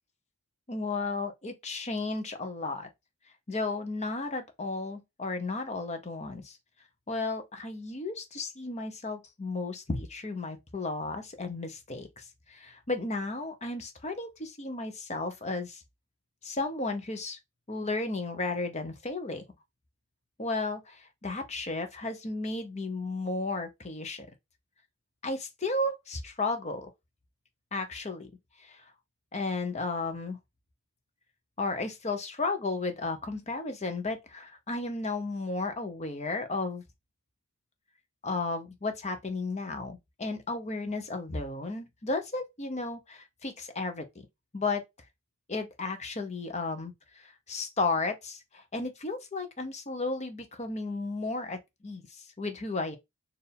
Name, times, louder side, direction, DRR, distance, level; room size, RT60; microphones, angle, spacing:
voice 1, 0.7-2.9 3.5-6.6 7.1-15.8 16.4-17.4 17.7-19.4 20.4-24.3 25.2-26.9 27.7-28.3 28.6-28.8 29.3-30.4 31.6-36.8 38.2-44.1 44.5-44.8 45.5-53.0, left 3 dB, 30° left, 0.9 m, -34 dB
4.6 x 2.7 x 3.4 m
head